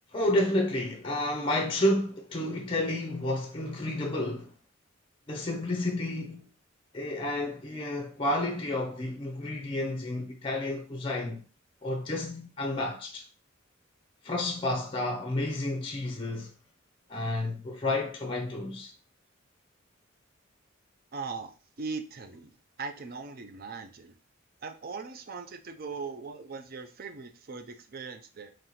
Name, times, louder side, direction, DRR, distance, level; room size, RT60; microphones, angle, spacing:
voice 1, 0.1-4.5 5.3-6.5 6.9-11.4 11.8-13.3 14.2-16.5 17.1-18.9, left 1 dB, 25° left, 0.5 m, -30 dB
voice 2, 21.1-24.2 24.6-28.5, right 4 dB, 45° right, 0.5 m, -40 dB
3.2 x 2.9 x 3.9 m
head